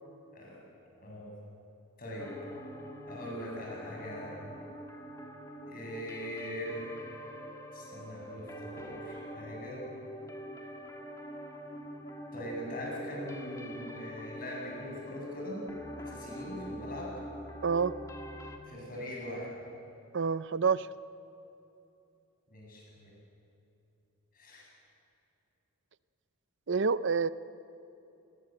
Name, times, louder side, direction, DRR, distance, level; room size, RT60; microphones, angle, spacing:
voice 1, 1.0-1.3 2.0-2.4 3.1-4.5 5.7-6.9 7.7-9.9 12.3-15.7 16.1-17.2 18.6-19.6 22.5-23.1 24.3-24.7, equal, 40° left, -2 dB, 7.8 m, -41 dB
sound 1, 2.2-18.6, equal, 15° left, 1.9 m, -44 dB
voice 2, 17.6-17.9 20.1-20.9 26.7-27.3, right 5 dB, 55° right, 16 dB, 0.6 m, -27 dB
28.5 x 21.0 x 7.8 m, 2.9 s
head